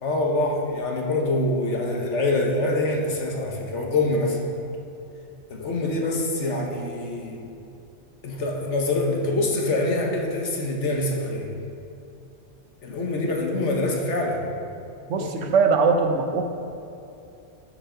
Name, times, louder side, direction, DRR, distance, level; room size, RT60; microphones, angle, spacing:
voice 1, 0.0-4.4 5.5-7.4 8.2-11.5 12.8-14.4 15.2-15.5, left 2 dB, 75° left, 0 dB, 1.4 m, -25 dB
voice 2, 15.1-16.5, right 4 dB, 85° right, 5 dB, 1.1 m, -21 dB
12.5 x 5.1 x 3.8 m, 2.7 s
omnidirectional pair, 1.2 m